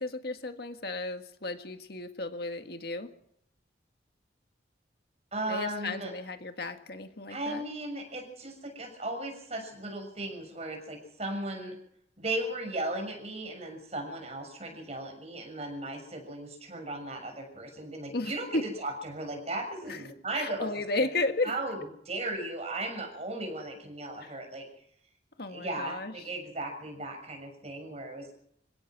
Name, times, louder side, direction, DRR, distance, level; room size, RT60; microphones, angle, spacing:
voice 1, 0.0-3.1 5.5-7.6 18.1-18.6 19.9-20.0 20.3-21.5 24.2-24.3 25.4-26.1, left 2 dB, 60° left, 7 dB, 1.7 m, -34 dB
voice 2, 5.3-6.1 7.3-11.8 12.2-20.7 20.9-21.1 21.4-21.8 22.0-24.7 25.5-28.3, right 2 dB, 35° right, 4 dB, 6.5 m, -36 dB
27.0 x 17.0 x 6.1 m, 0.71 s
head